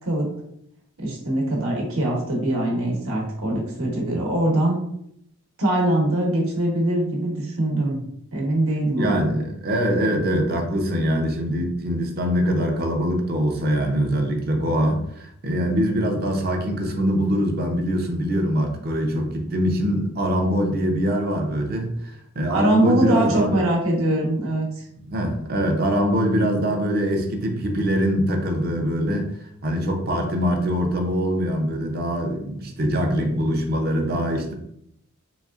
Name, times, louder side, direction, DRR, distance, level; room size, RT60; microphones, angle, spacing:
voice 1, 1.0-4.8 5.6-8.0 8.3-9.3 22.5-24.8, right 1 dB, 70° right, -2 dB, 1.2 m, -22 dB
voice 2, 9.0-23.7 25.0-34.5, equal, 45° right, 3 dB, 0.6 m, -23 dB
4.1 x 3.2 x 2.4 m, 0.72 s
head